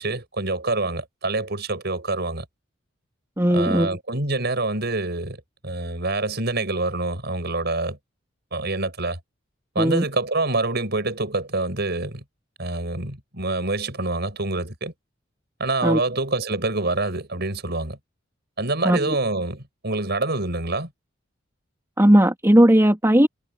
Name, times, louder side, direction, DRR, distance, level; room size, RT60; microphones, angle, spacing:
voice 1, 0.0-2.4 3.5-8.0 8.5-9.2 9.7-12.2 12.6-14.9 15.6-18.0 18.6-20.9, right 2 dB, 60° right, 6.6 m, -26 dB
voice 2, 3.4-4.0 9.8-10.0 15.8-16.0 18.8-19.1 22.0-23.3, equal, 15° right, 2.9 m, -17 dB
head